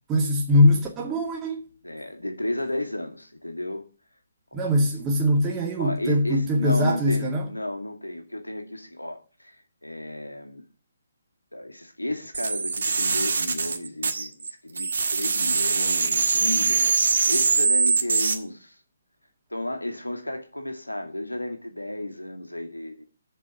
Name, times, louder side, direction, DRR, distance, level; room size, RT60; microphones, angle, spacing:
voice 1, 0.1-1.6 4.5-7.4, left 1 dB, 15° right, 2.2 m, -22 dB
voice 2, 1.8-3.9 4.5-4.9 5.8-9.6 9.8-10.6 11.5-18.8 19.5-23.0, left 1 dB, 90° left, 2.2 m, -33 dB
sound 1, 12.3-14.5 14.8-18.3, right 4 dB, 60° right, 1.6 m, -23 dB
7.3 x 7.1 x 7.8 m
figure-of-eight pair, 140°, 0 cm